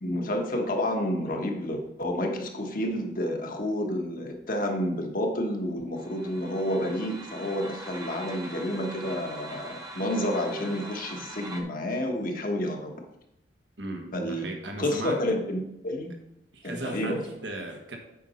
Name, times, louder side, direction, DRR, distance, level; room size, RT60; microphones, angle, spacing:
voice 1, 0.0-12.9 14.1-14.4 14.8-16.1 16.6-17.2, left 1 dB, 50° left, 3 dB, 1.2 m, -30 dB
sound 1, 6.0-11.6, right 1 dB, 20° right, 0.9 m, -43 dB
voice 2, 13.8-15.2 16.5-18.0, right 2 dB, 75° right, 3 dB, 1.5 m, -37 dB
8.4 x 5.2 x 4.3 m, 0.85 s
head